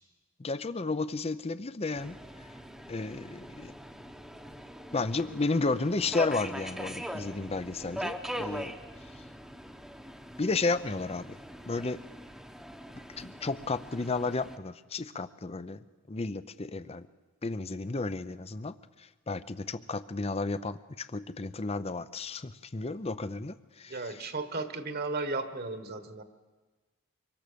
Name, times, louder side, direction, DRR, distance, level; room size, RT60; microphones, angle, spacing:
voice 1, 0.4-2.2 2.9-3.7 4.9-8.7 10.4-11.4 11.7-12.0 13.2-15.8 16.1-17.1 17.4-18.7 19.3-23.9, left 3 dB, 25° left, 14 dB, 0.6 m, -32 dB
Subway metro underground, 2.0-14.6, equal, ahead, 1.0 m, -42 dB
voice 2, 23.9-26.2, right 3 dB, 45° right, 9 dB, 1.5 m, -35 dB
24.5 x 23.5 x 6.9 m, 1.3 s
head